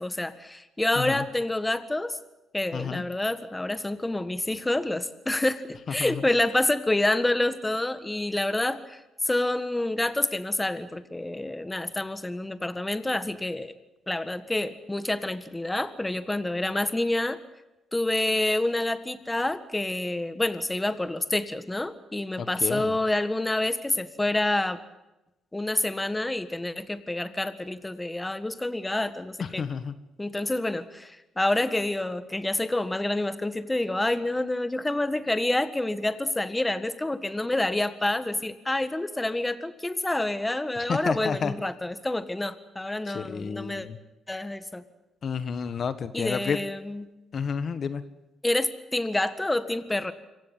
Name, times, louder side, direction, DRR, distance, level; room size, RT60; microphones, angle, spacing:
voice 1, 0.0-2.2 2.5-13.7 14.1-17.4 17.9-24.8 25.5-29.6 30.2-43.9 44.3-44.8 46.1-47.1 48.4-50.1, left 2 dB, 15° left, 12 dB, 1.6 m, -28 dB
voice 2, 2.7-3.0 6.0-6.2 22.4-22.9 29.6-29.9 40.9-41.5 43.1-44.0 45.2-46.6 47.3-48.0, left 6 dB, 50° left, 12 dB, 1.5 m, -30 dB
26.5 x 15.5 x 9.5 m, 0.97 s
cardioid pair, 90°, 0 cm